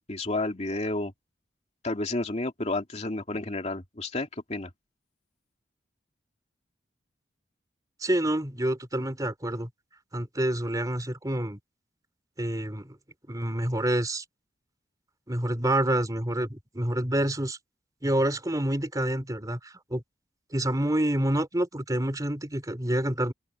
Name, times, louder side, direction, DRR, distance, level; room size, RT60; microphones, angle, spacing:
voice 1, 0.1-1.1 1.8-4.7, left 2 dB, 35° left, 2.5 m, -31 dB
voice 2, 8.0-9.7 10.1-11.6 12.4-13.0 13.3-14.2 15.3-17.6 18.0-20.0 20.5-23.3, right 1 dB, 20° right, 3.2 m, -27 dB
open air
head